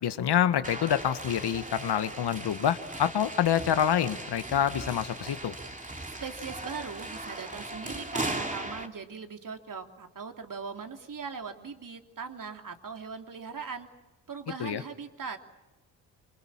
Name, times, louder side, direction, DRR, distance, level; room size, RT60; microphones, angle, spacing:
voice 1, 0.0-5.5 14.6-14.8, left 9 dB, 55° left, 12 dB, 1.7 m, -27 dB
sound 1, 0.6-8.9, right 2 dB, 15° right, 2.9 m, -38 dB
voice 2, 5.8-13.9 14.3-15.4, right 5 dB, 40° right, 5 dB, 3.1 m, -40 dB
27.5 x 25.0 x 7.4 m, 1.1 s
hypercardioid pair, 50°, 48 cm